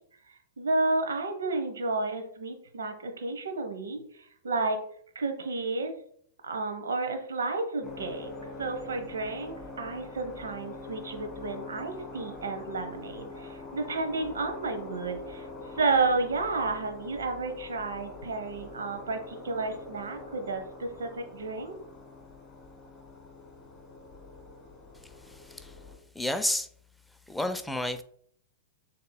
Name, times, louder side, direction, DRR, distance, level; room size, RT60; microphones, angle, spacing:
voice 1, 0.6-4.8 5.1-5.9 6.4-8.3 8.6-15.5 15.8-21.8, right 3 dB, 75° right, 6 dB, 0.9 m, -31 dB
sound 1, 7.8-26.0, left 2 dB, 20° left, 1.5 m, -44 dB
voice 2, 25.2-25.8 26.1-26.7 27.3-28.0, left 1 dB, 5° left, 8 dB, 0.5 m, -31 dB
6.6 x 3.6 x 2.2 m, 0.62 s
hypercardioid pair, 105°, 0 cm